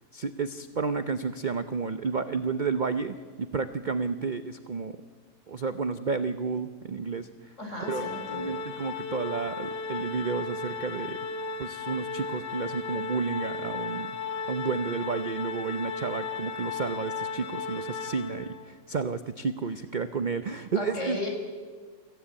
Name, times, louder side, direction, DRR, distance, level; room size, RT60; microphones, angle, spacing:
voice 1, 0.1-5.0 5.5-7.5 7.9-11.2 11.6-14.2 14.5-21.2, right 5 dB, 60° right, 10 dB, 0.5 m, -31 dB
voice 2, 7.6-8.5 20.7-21.3, left 2 dB, 40° left, 2 dB, 5.2 m, -34 dB
Organ, 7.8-18.7, left 4 dB, 85° left, 1.9 m, -35 dB
25.5 x 15.5 x 8.7 m, 1.5 s
omnidirectional pair, 1.9 m